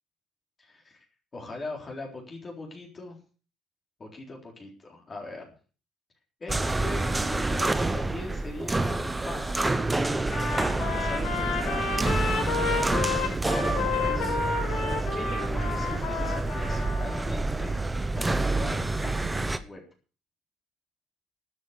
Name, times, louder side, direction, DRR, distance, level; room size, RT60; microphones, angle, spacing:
voice 1, 0.6-1.0 1.3-3.2 4.0-5.4 6.4-10.0 10.4-14.8 15.1-17.7 18.1-19.8, left 2 dB, 25° left, 0 dB, 3.8 m, -41 dB
sound 1, 6.5-19.6, right 2 dB, 10° right, 0.9 m, -28 dB
Trumpet, 10.3-17.2, left 5 dB, 60° left, 5.9 m, -31 dB
12.5 x 8.9 x 6.7 m, 0.38 s
cardioid pair, 155°, 0 cm